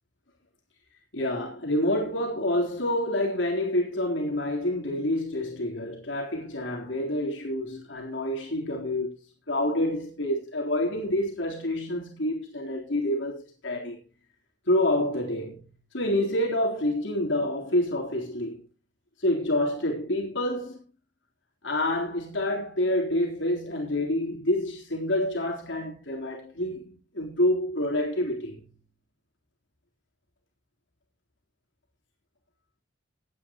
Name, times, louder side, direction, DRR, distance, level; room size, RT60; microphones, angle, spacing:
voice 1, 1.1-9.2 9.5-14.0 14.7-15.7 15.9-18.6 19.2-20.8 21.6-28.7, left 1 dB, 75° left, 3.8 m, -28 dB
18.0 x 9.7 x 3.0 m
head